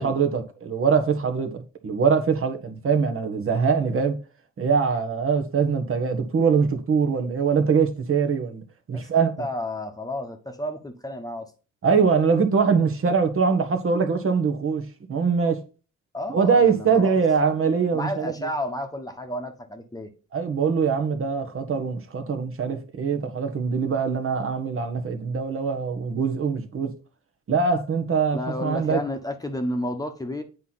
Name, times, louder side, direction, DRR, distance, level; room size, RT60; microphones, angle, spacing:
voice 1, 0.0-4.2 4.6-8.6 8.9-9.3 11.8-15.6 16.3-18.3 20.3-26.9 27.5-29.0, right 5 dB, 45° right, 1.2 m, -23 dB
voice 2, 8.9-11.5 16.1-17.2 17.9-20.1 28.3-30.4, left 1 dB, 10° left, 1.1 m, -31 dB
8.2 x 4.5 x 4.1 m
cardioid pair, 90°, 30 cm